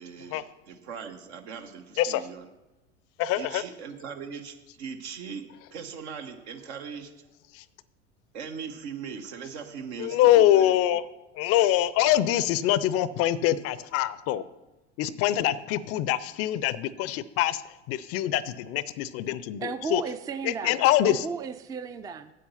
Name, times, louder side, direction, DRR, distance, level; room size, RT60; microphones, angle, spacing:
voice 1, 0.0-2.5 3.3-5.4 5.7-7.1 8.3-10.8, right 6 dB, 70° right, 6 dB, 1.2 m, -39 dB
voice 2, 3.2-3.6 7.5-7.6 10.0-11.1 11.4-14.4 15.0-17.6 17.9-20.0 20.4-21.2, left 13 dB, 45° left, 18 dB, 0.5 m, -24 dB
voice 3, 19.6-20.8 21.0-22.3, right 5 dB, 10° right, 11 dB, 0.4 m, -34 dB
8.2 x 7.5 x 5.6 m, 1.1 s
hypercardioid pair, 80°, 35 cm